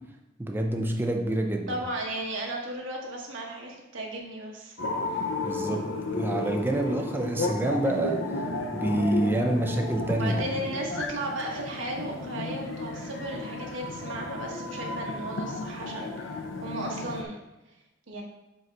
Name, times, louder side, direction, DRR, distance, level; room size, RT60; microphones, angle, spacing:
voice 1, 0.4-1.9 5.4-5.8 6.1-10.7, right 1 dB, 10° right, 2 dB, 0.5 m, -27 dB
voice 2, 1.7-4.8 5.1-5.2 10.1-17.4 18.1-18.2, right 1 dB, 85° right, -1 dB, 1.2 m, -35 dB
sound 1, 4.8-17.2, left 2 dB, 70° left, 0.6 m, -33 dB
5.2 x 4.0 x 4.5 m, 0.96 s
head